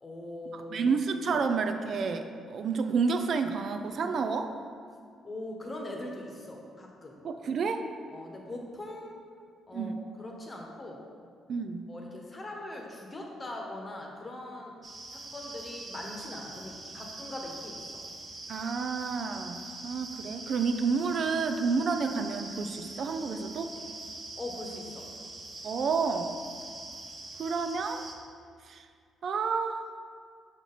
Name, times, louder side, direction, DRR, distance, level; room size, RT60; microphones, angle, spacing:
voice 1, 0.0-1.0 1.3-1.4 5.2-7.2 8.1-9.2 9.7-11.0 11.9-14.8 15.1-17.8 24.4-25.0, left 1 dB, 30° left, 0 dB, 1.0 m, -41 dB
voice 2, 0.5-4.5 7.2-7.9 9.7-10.0 11.5-11.9 18.5-23.7 25.6-26.4 27.4-28.1 28.7-28.9 29.2-29.8, right 5 dB, 60° right, 7 dB, 0.3 m, -30 dB
sound 1, 14.8-28.1, right 2 dB, 30° right, 0.8 m, -43 dB
5.8 x 4.3 x 4.1 m, 2.1 s
cardioid pair, 90°, 0 cm